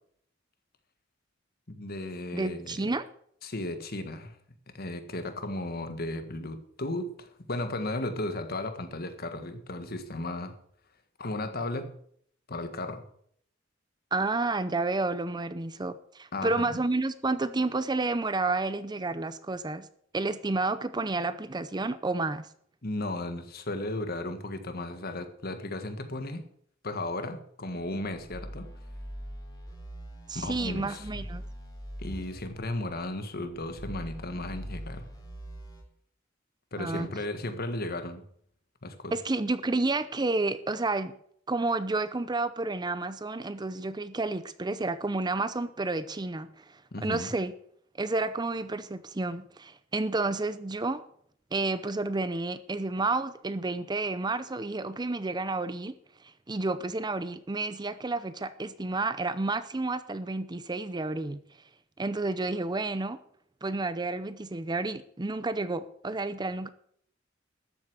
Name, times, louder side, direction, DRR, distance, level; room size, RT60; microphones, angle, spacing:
voice 1, 1.7-2.8 3.4-4.4 4.7-10.6 11.2-11.9 12.5-13.0 16.3-16.8 22.8-26.4 26.8-28.7 30.3-31.2 32.0-35.1 36.7-38.2 38.8-39.1 46.9-47.3, left 2 dB, 50° left, 1.6 m, -35 dB
voice 2, 2.3-3.1 14.1-19.9 20.1-22.5 30.3-31.4 36.8-37.1 39.1-41.1 41.5-47.5 48.0-51.0 51.5-55.9 56.5-61.4 62.0-63.2 63.6-66.7, right 3 dB, 20° right, 0.6 m, -30 dB
sound 1, 27.7-35.8, equal, 20° left, 3.9 m, -43 dB
13.5 x 7.9 x 8.0 m
head